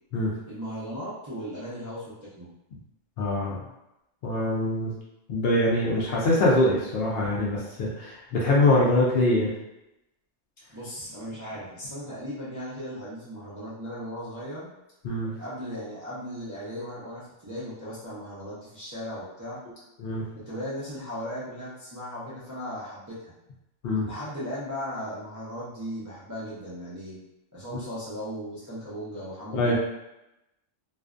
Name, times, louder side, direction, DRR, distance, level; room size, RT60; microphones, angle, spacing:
voice 1, 0.5-2.5 10.7-14.7 15.4-19.6 20.5-23.3 24.1-27.2 27.5-29.8, equal, 30° right, -10 dB, 0.3 m, -37 dB
voice 2, 3.2-3.6 4.2-4.9 5.3-9.5 15.0-15.3 20.0-20.2 23.8-24.1 29.5-29.8, left 1 dB, 65° left, -5 dB, 0.6 m, -23 dB
2.5 x 2.2 x 2.4 m, 0.91 s
omnidirectional pair, 1.3 m